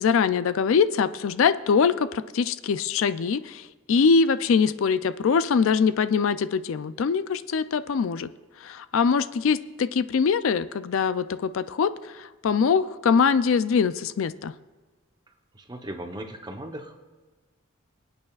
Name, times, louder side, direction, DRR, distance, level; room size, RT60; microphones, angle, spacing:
voice 1, 0.0-8.3 8.6-14.5, left 5 dB, 65° left, 14 dB, 0.4 m, -23 dB
voice 2, 15.5-17.0, right 1 dB, 20° right, 5 dB, 0.9 m, -37 dB
25.0 x 8.8 x 2.4 m, 1.3 s
head